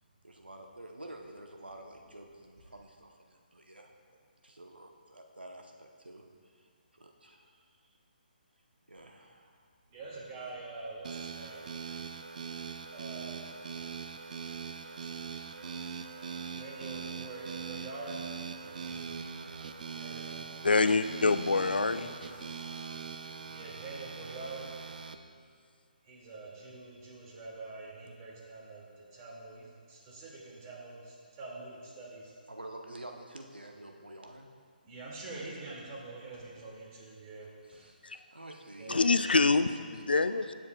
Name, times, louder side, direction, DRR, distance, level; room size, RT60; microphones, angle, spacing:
voice 1, 0.2-3.9 4.4-6.2 6.6-8.0 8.9-9.6 18.6-18.9 20.6-21.0 32.5-34.5 37.7-39.9 40.3-40.4, right 1 dB, 85° right, 2 dB, 1.0 m, -49 dB
voice 2, 9.9-11.7 12.9-13.5 16.6-18.2 18.5-19.0 19.9-20.4 21.8-22.1 23.5-24.7 26.1-28.8 29.1-32.3 34.8-37.5 38.8-39.0, right 3 dB, 25° right, -4 dB, 2.4 m, -45 dB
sound 1, 11.0-25.2, right 6 dB, 55° right, 0.5 m, -41 dB
voice 3, 20.6-22.1 38.0-38.2 38.9-40.5, left 3 dB, 75° left, 11 dB, 0.4 m, -26 dB
16.5 x 7.5 x 2.4 m, 2.1 s
figure-of-eight pair, 140°, 5 cm